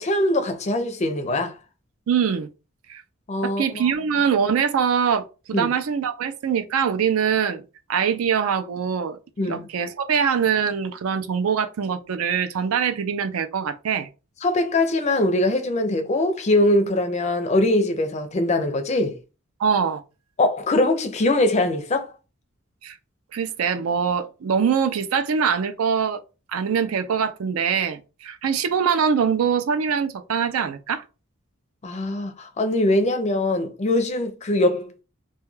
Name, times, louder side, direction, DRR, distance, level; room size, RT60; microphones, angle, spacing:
voice 1, 0.0-1.5 3.3-3.8 5.5-5.7 9.4-9.7 14.4-19.2 20.4-22.1 31.8-35.0, left 1 dB, 30° left, 0.4 m, -22 dB
voice 2, 2.1-2.5 2.9-3.0 3.4-7.6 7.9-9.2 9.5-14.1 19.6-20.0 22.8-22.9 23.3-26.2 26.5-31.0, right 7 dB, 85° right, 0.4 m, -23 dB
2.3 x 2.2 x 3.1 m
head